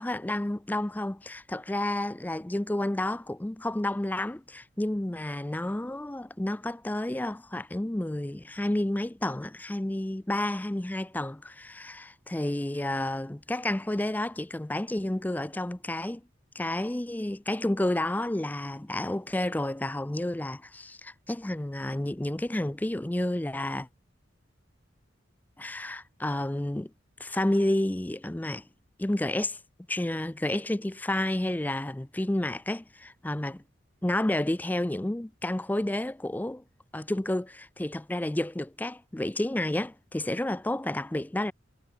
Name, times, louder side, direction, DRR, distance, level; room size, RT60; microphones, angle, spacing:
voice 1, 0.0-16.2 16.6-23.9 25.6-26.9 27.2-28.7 29.0-29.6 29.9-33.6 34.0-36.6 36.9-41.5, left 1 dB, 10° left, 0.4 m, -30 dB
head